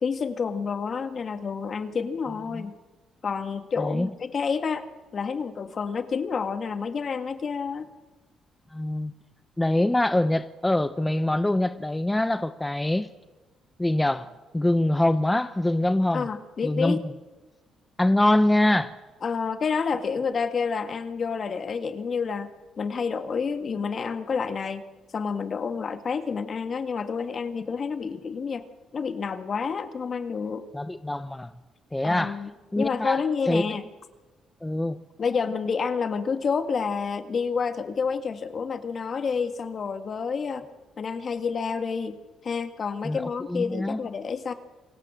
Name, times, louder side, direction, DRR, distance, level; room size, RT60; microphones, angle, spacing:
voice 1, 0.0-2.7 3.2-4.9 5.1-7.9 16.1-17.0 19.2-24.9 25.1-28.7 28.9-30.6 32.0-32.5 32.8-33.9 35.2-40.6 41.0-42.2 42.4-44.5, left 5 dB, 45° left, 1.8 m, -29 dB
voice 2, 3.8-4.1 8.7-9.1 9.6-13.1 13.8-14.3 14.5-16.3 16.6-17.1 18.0-18.9 30.7-31.5 31.9-32.4 32.7-33.8 34.6-35.0 43.0-43.2 43.5-44.0, left 1 dB, 10° left, 0.8 m, -24 dB
27.5 x 17.5 x 7.4 m
cardioid pair, 90°, 0 cm